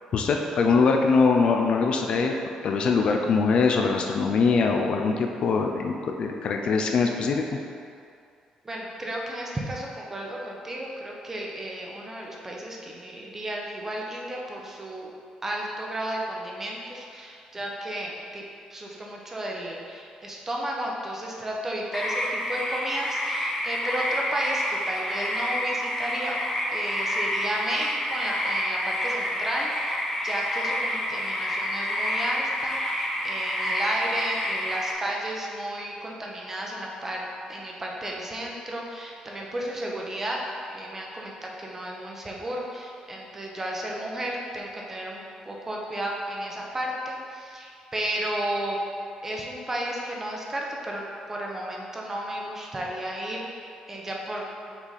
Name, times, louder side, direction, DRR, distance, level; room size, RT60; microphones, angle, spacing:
voice 1, 0.1-2.3 2.6-7.4, left 4 dB, 50° left, 3 dB, 0.4 m, -22 dB
voice 2, 8.6-15.1 15.4-18.4 18.7-26.4 26.7-40.4 40.7-48.8 49.2-51.0 51.3-54.7, right 1 dB, 15° right, -2 dB, 0.7 m, -33 dB
sound 1, 21.9-34.9, left 1 dB, 20° left, 0.7 m, -28 dB
6.0 x 4.0 x 4.0 m, 2.4 s
cardioid pair, 155°, 2 cm